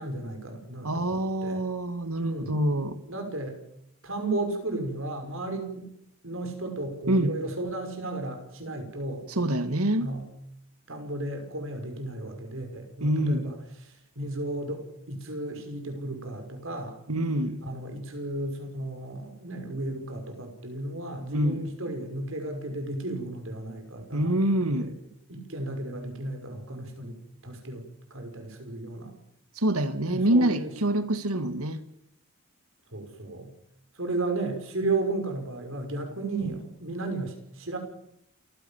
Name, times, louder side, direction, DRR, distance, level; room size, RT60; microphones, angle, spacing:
voice 1, 0.0-1.7 2.2-3.6 4.0-5.9 6.2-9.3 10.0-10.3 10.9-17.0 17.6-24.9 25.3-27.2 27.4-29.1 30.0-30.7 32.9-33.5 33.9-37.8, right 2 dB, 65° right, 5 dB, 5.8 m, -34 dB
voice 2, 0.8-3.0 7.1-7.3 9.4-10.1 13.0-13.5 17.1-17.6 21.3-21.7 24.1-24.9 29.6-31.8, right 1 dB, 85° right, 11 dB, 2.0 m, -26 dB
28.5 x 15.5 x 7.3 m, 0.76 s
head